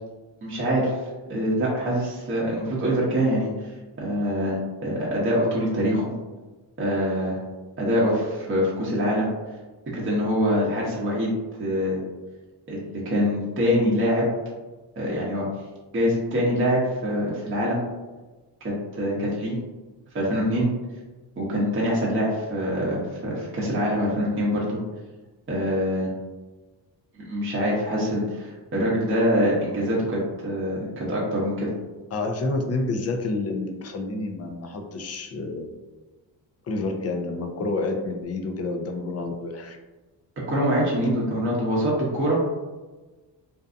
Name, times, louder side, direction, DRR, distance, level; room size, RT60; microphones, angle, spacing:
voice 1, 0.4-1.0 1.3-3.7 4.0-6.1 6.8-7.4 7.8-9.3 9.9-11.3 11.6-12.0 12.7-14.3 15.0-15.5 15.9-17.8 18.6-19.6 20.1-20.7 21.4-24.8 25.5-26.1 27.3-31.7 40.5-42.4, equal, 25° right, -5 dB, 0.8 m, -24 dB
voice 2, 32.1-35.7 36.7-39.8, left 3 dB, 35° left, 4 dB, 0.4 m, -29 dB
2.6 x 2.2 x 2.5 m, 1.2 s
cardioid pair, 80°, 46 cm